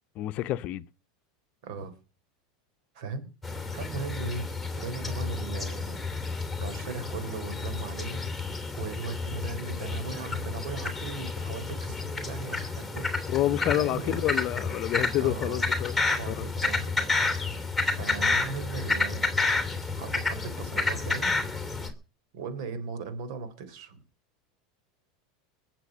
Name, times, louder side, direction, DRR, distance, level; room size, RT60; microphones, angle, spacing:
voice 1, 0.2-0.8 13.3-16.5, left 14 dB, 45° left, 0.8 m, -28 dB
voice 2, 1.6-1.9 2.9-3.3 3.7-4.5 4.8-6.0 6.6-8.3 8.8-13.3 13.8-14.2 15.2-15.6 16.1-16.9 17.9-19.4 20.0-21.3 22.3-24.0, right 4 dB, 65° right, 4.0 m, -38 dB
sound 1, 3.4-21.9, left 3 dB, ahead, 3.0 m, -30 dB
21.0 x 7.6 x 6.3 m
supercardioid pair, 125°, 3 cm